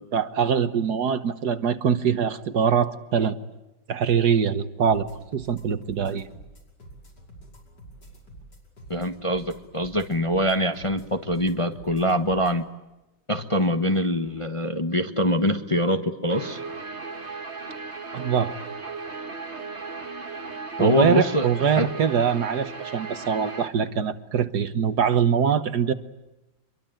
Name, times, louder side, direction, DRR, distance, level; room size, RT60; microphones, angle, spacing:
voice 1, 0.0-3.4 3.9-5.1 5.3-6.3 18.1-18.5 20.8-25.9, right 7 dB, 60° right, 11 dB, 1.6 m, -23 dB
sound 1, 4.8-12.6, right 1 dB, 60° left, 6.3 m, -48 dB
voice 2, 8.9-12.6 13.3-16.6 20.8-21.9, equal, 20° left, 7 dB, 1.0 m, -24 dB
Guitar, 16.3-23.7, right 4 dB, 35° right, 2.4 m, -36 dB
26.5 x 23.0 x 9.0 m, 0.97 s
omnidirectional pair, 2.1 m